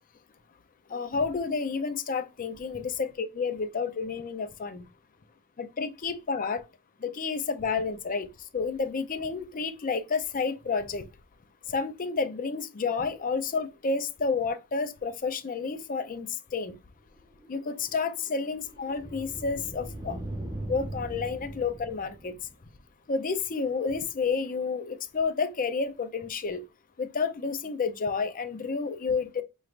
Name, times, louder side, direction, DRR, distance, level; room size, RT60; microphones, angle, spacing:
voice 1, 0.9-4.8 5.6-6.6 7.0-8.3 8.5-11.0 11.7-16.3 16.5-16.8 17.5-20.2 20.7-22.3 23.1-26.6 27.0-29.4, left 4 dB, 40° left, 0.5 m, -30 dB
sound 1, 17.2-22.8, right 1 dB, 15° right, 0.8 m, -40 dB
4.5 x 3.1 x 2.5 m
head